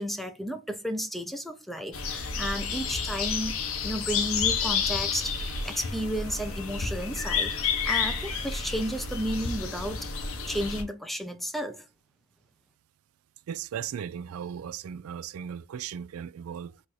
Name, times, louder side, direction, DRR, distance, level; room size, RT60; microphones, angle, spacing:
voice 1, 0.0-10.1 10.5-11.9, equal, ahead, 0.5 m, -33 dB
sound 1, 1.9-10.8, left 5 dB, 80° left, 0.9 m, -30 dB
voice 2, 13.5-16.8, right 8 dB, 85° right, 0.3 m, -37 dB
4.1 x 2.6 x 4.6 m
head